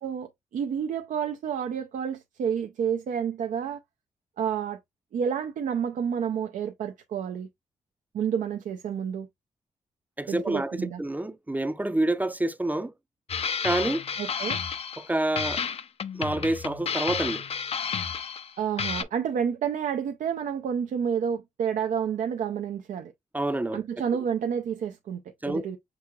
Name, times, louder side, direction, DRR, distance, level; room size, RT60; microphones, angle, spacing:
voice 1, 0.0-3.8 4.4-4.8 5.1-7.5 8.1-9.3 10.3-11.0 14.2-14.6 18.6-23.1 23.7-25.8, right 7 dB, 80° right, 0.6 m, -29 dB
voice 2, 10.2-12.9 13.6-14.0 15.0-15.6 16.1-17.4 23.3-23.8 25.4-25.7, right 1 dB, 10° right, 0.5 m, -27 dB
sound 1, 13.3-15.1 15.4-18.5 18.8-19.0, left 6 dB, 50° left, 0.5 m, -31 dB
6.1 x 2.8 x 2.3 m
cardioid pair, 60°, 13 cm